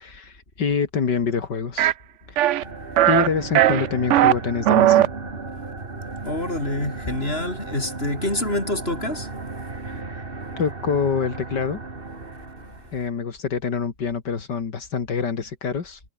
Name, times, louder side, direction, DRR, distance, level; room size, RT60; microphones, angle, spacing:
voice 1, 0.0-1.9 2.3-2.4 3.1-5.1 9.9-10.0 10.6-11.8 12.9-16.0, left 5 dB, 80° left, 2.9 m, -26 dB
sound 1, 1.8-1.9 2.4-2.6 3.0-3.3 3.6-4.3 4.7-5.1, right 12 dB, 65° right, 0.7 m, -16 dB
sound 2, 2.5-13.0, right 3 dB, 30° right, 2.6 m, -35 dB
voice 2, 6.2-9.3, left 1 dB, 35° left, 7.5 m, -26 dB
omnidirectional pair, 1.8 m